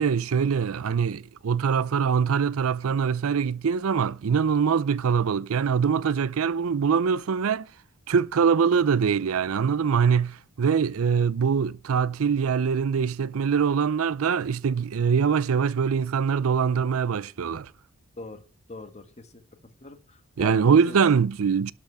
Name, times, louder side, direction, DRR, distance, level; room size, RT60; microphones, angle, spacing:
voice 1, 0.0-7.7 8.1-17.7 20.4-21.7, right 6 dB, 80° right, 0.5 m, -23 dB
voice 2, 18.7-19.3 19.8-21.0, left 2 dB, 30° left, 1.5 m, -42 dB
12.0 x 5.7 x 8.1 m
head